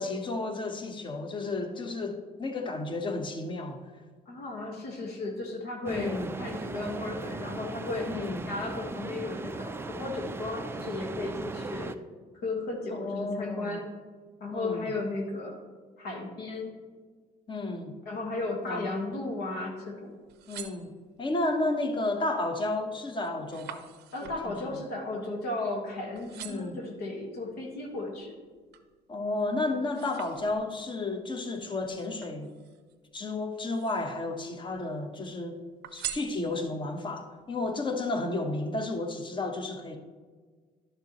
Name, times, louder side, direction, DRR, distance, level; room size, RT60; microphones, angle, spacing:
voice 1, 0.0-3.9 5.8-6.3 8.1-8.5 12.9-13.8 14.5-14.9 17.5-17.9 18.7-18.9 20.5-20.9 21.2-23.9 24.2-24.7 26.3-26.8 29.1-32.5 33.1-35.6 35.9-40.0, left 2 dB, 30° left, 1.0 m, -32 dB
voice 2, 4.3-8.2 8.5-11.9 12.4-13.9 14.4-15.6 16.0-16.7 18.0-20.2 24.1-28.4, left 2 dB, 70° left, 1.6 m, -35 dB
sound 1, 5.9-12.0, right 3 dB, 15° right, 0.4 m, -38 dB
sound 2, 20.1-21.4 22.0-22.4 22.7-25.9 26.1-26.9 27.5-29.0 29.4-30.9 31.8-32.9 33.5-34.3 34.6-35.3 35.8-36.9 37.4-37.5, right 11 dB, 80° right, 0.6 m, -45 dB
12.0 x 6.8 x 3.0 m
cardioid pair, 110°, 17 cm